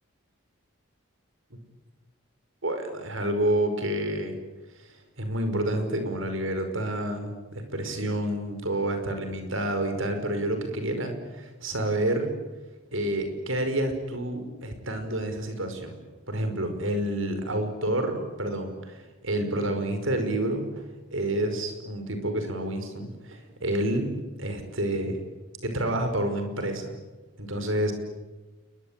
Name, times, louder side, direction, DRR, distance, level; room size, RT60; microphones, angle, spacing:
voice 1, 2.6-4.4 4.8-12.3 12.9-16.0 16.3-20.7 21.1-24.1 24.4-25.2 25.6-26.9 27.4-27.9, right 1 dB, 70° right, 7 dB, 5.4 m, -29 dB
28.5 x 22.5 x 9.0 m, 1.2 s
head